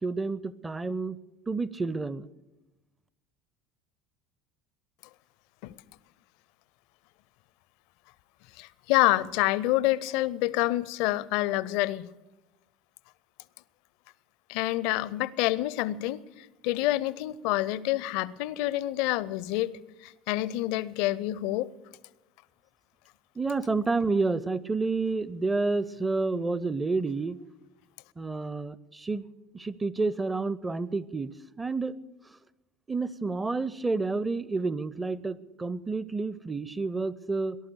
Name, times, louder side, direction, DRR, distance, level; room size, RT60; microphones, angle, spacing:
voice 1, 0.0-1.2 1.5-2.3 23.4-27.4 28.2-29.3 29.5-32.0 32.9-37.6, right 3 dB, 15° right, 0.6 m, -29 dB
voice 2, 8.5-12.1 14.5-21.7, left 16 dB, 60° left, 0.5 m, -27 dB
18.5 x 11.5 x 6.9 m
figure-of-eight pair, 70°, 0 cm